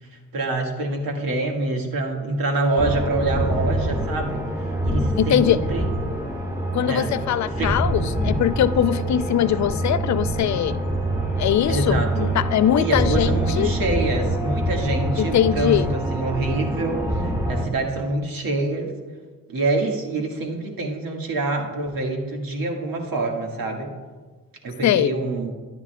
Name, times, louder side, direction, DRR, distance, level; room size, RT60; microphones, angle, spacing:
voice 1, 0.3-4.4 4.8-5.9 6.8-7.1 7.6-7.8 11.7-12.4 12.8-18.9 19.5-23.9 24.6-25.5, right 2 dB, 60° right, 1 dB, 1.7 m, -26 dB
sound 1, 2.8-17.7, right 1 dB, 10° right, 1.6 m, -25 dB
voice 2, 5.2-5.6 6.7-10.8 11.4-13.7 15.2-15.9 24.8-25.1, left 10 dB, 50° left, 13 dB, 0.4 m, -21 dB
11.0 x 9.7 x 2.2 m, 1.4 s
cardioid pair, 70°, 38 cm